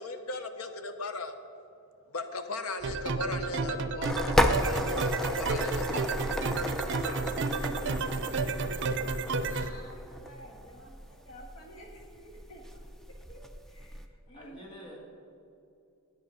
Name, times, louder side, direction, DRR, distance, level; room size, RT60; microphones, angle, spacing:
voice 1, 0.0-1.3 2.1-6.1, left 2 dB, 85° left, 8 dB, 0.8 m, -38 dB
sound 1, 2.8-9.7, right 3 dB, 60° right, 0.6 m, -31 dB
sound 2, 4.0-14.1, left 1 dB, ahead, 0.5 m, -33 dB
voice 2, 9.4-12.9 13.3-14.0 14.3-14.6, equal, 65° left, 0 dB, 1.6 m, -51 dB
voice 3, 14.1-15.0, equal, 25° left, -3 dB, 1.8 m, -48 dB
9.2 x 8.3 x 6.3 m, 2.6 s
head